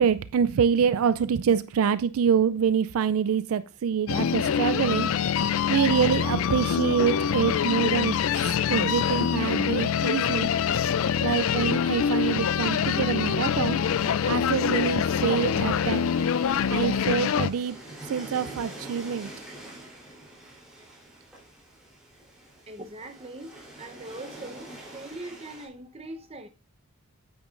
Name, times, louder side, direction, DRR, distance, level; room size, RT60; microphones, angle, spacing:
voice 1, 0.0-5.1 5.7-10.5 11.2-13.8 14.2-16.1 16.7-17.8 18.0-19.3, right 7 dB, 70° right, 0.4 m, -26 dB
sound 1, 4.1-17.5, left 7 dB, 65° left, 0.4 m, -25 dB
sound 2, 13.7-25.7, right 1 dB, 5° right, 3.3 m, -45 dB
voice 2, 22.7-26.5, right 2 dB, 25° right, 0.8 m, -41 dB
9.1 x 8.8 x 2.5 m
head